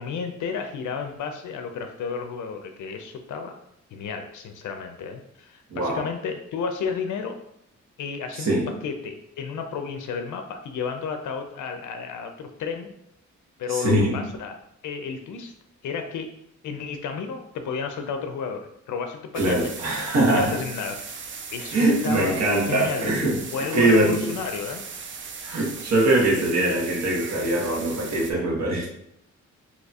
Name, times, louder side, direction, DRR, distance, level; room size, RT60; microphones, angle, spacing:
voice 1, 0.0-3.6 3.9-7.4 8.0-12.9 13.6-14.6 14.8-15.5 15.8-16.3 16.6-19.7 20.3-21.0 21.5-22.4 22.7-23.2 23.5-24.8, left 5 dB, 90° left, 6 dB, 0.5 m, -32 dB
voice 2, 5.7-6.0 8.4-8.6 13.7-14.2 19.3-20.6 21.7-23.4 23.7-24.2 25.4-28.9, right 1 dB, 65° right, -3 dB, 1.1 m, -22 dB
sound 1, 19.3-28.3, right 5 dB, 45° right, 0.4 m, -38 dB
2.8 x 2.3 x 4.0 m, 0.76 s
wide cardioid pair, 150°, 29 cm